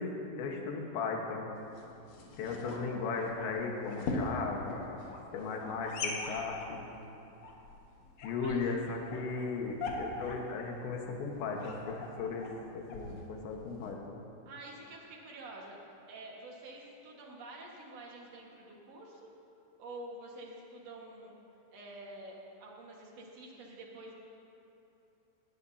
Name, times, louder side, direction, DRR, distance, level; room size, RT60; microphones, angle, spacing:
voice 1, 0.0-1.5 2.4-6.9 8.2-14.2, left 4 dB, 70° left, 1 dB, 3.4 m, -37 dB
sound 1, 1.6-13.9, left 2 dB, 90° left, 1.4 m, -42 dB
voice 2, 14.4-19.3 19.8-21.3 21.7-24.2, right 2 dB, 70° right, -2 dB, 1.6 m, -48 dB
19.0 x 18.0 x 2.8 m, 2.9 s
omnidirectional pair, 5.7 m